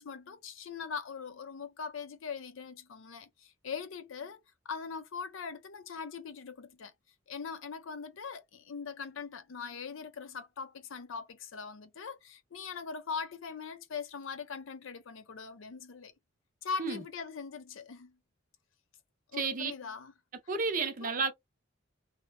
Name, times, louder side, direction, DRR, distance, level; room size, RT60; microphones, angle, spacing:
voice 1, 0.0-6.9 7.3-16.1 16.6-18.2 19.3-20.1 20.8-21.1, left 5 dB, 80° left, 0.5 m, -41 dB
voice 2, 19.3-19.7 20.5-21.3, right 4 dB, 45° right, 0.5 m, -31 dB
2.8 x 2.1 x 2.5 m
head